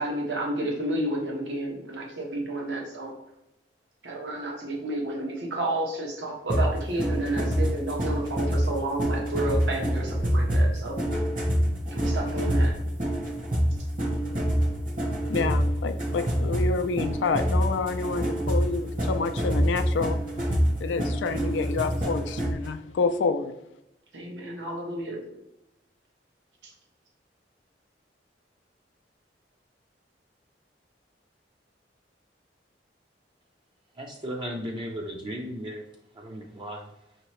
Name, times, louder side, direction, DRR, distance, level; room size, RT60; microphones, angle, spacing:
voice 1, 0.0-3.1 4.0-11.0 11.9-12.7 24.1-25.3, right 1 dB, 85° right, -1 dB, 1.1 m, -31 dB
sound 1, 6.5-22.7, equal, 50° right, 1.0 m, -26 dB
voice 2, 15.3-20.2 20.8-23.5, left 4 dB, 90° left, 9 dB, 0.3 m, -28 dB
voice 3, 34.0-35.8 36.1-36.9, equal, 25° right, 0 dB, 0.4 m, -35 dB
5.5 x 2.9 x 3.0 m, 0.84 s
head